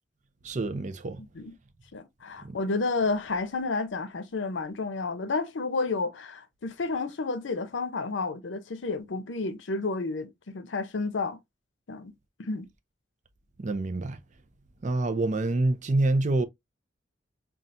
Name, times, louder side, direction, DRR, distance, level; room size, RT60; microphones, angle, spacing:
voice 1, 0.4-1.2 2.4-2.6 13.6-14.2 14.8-16.4, right 2 dB, 40° right, 0.5 m, -26 dB
voice 2, 1.2-1.6 1.9-11.4 11.9-12.1 12.4-12.7, left 3 dB, 85° left, 0.6 m, -31 dB
5.5 x 2.4 x 2.5 m
head